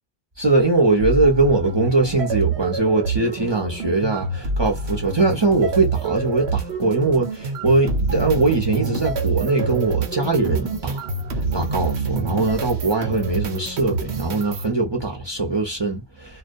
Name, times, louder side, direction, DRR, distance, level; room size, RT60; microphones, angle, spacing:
voice 1, 0.4-11.1 11.4-16.4, right 3 dB, 30° right, 0.7 m, -21 dB
sound 1, 1.0-14.7, right 4 dB, 90° right, 1.0 m, -27 dB
2.2 x 2.2 x 2.6 m
omnidirectional pair, 1.1 m